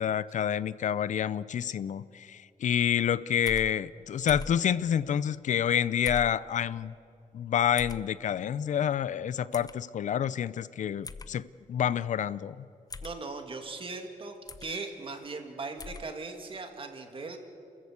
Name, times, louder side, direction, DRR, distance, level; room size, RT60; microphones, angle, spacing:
voice 1, 0.0-6.9 7.3-12.6, left 9 dB, 65° left, 18 dB, 0.6 m, -28 dB
sound 1, 3.5-3.7 4.3-4.6 6.0-6.4 7.8-8.0 9.5-9.7 11.0-11.3 12.9-13.2 14.5-14.7 15.8-16.0, left 4 dB, 30° left, 0.7 m, -39 dB
voice 2, 13.0-14.4 14.6-17.4, right 3 dB, 40° right, 5 dB, 2.6 m, -39 dB
29.0 x 14.0 x 8.3 m, 2.5 s
cardioid pair, 100°, 14 cm